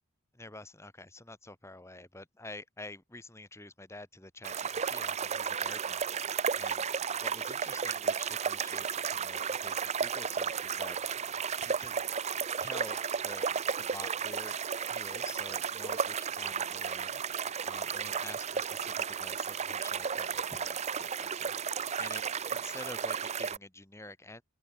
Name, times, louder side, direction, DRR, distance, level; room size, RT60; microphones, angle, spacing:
voice 1, 0.3-11.0 11.6-12.0 12.6-14.6 14.9-17.2 17.6-22.2 22.5-24.4, left 2 dB, 15° left, 2.3 m, -48 dB
sound 1, 4.4-23.6, right 6 dB, 30° right, 0.6 m, -33 dB
open air
head